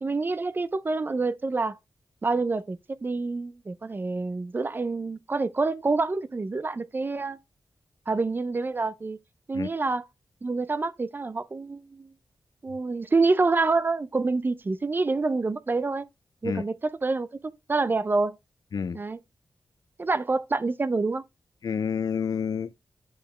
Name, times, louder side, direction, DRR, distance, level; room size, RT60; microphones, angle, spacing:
voice 1, 0.0-1.8 2.2-7.4 8.1-9.2 9.5-10.1 10.4-12.1 12.6-16.1 16.4-17.3 17.7-18.4 18.9-19.2 20.0-21.2, right 3 dB, 25° right, 0.5 m, -27 dB
voice 2, 21.6-22.7, left 6 dB, 60° left, 0.6 m, -29 dB
9.1 x 5.0 x 3.2 m
wide cardioid pair, 175°, 7 cm